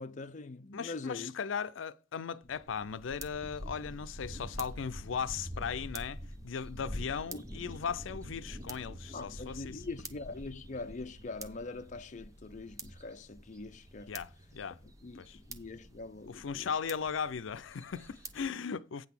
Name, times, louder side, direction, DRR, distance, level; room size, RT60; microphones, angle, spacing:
voice 1, 0.0-1.3 7.3-7.4 9.1-14.1 15.0-16.7, left 3 dB, 40° left, 0.6 m, -43 dB
voice 2, 0.7-9.8 14.1-14.8 15.2-15.4 16.3-19.1, left 6 dB, 85° left, 0.5 m, -37 dB
sound 1, 2.4-18.5, right 1 dB, 15° right, 0.9 m, -46 dB
9.3 x 3.9 x 7.2 m
head